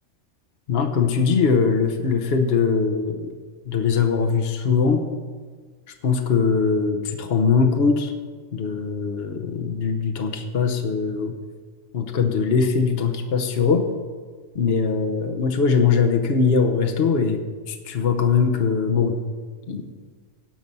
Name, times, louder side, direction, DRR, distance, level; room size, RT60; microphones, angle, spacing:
voice 1, 0.7-3.3 3.7-5.0 6.0-8.1 8.5-11.4 11.9-13.9 14.5-17.4 17.7-19.2 19.7-19.8, left 5 dB, 50° left, 6 dB, 1.1 m, -21 dB
17.5 x 5.9 x 5.4 m, 1.5 s
omnidirectional pair, 1.3 m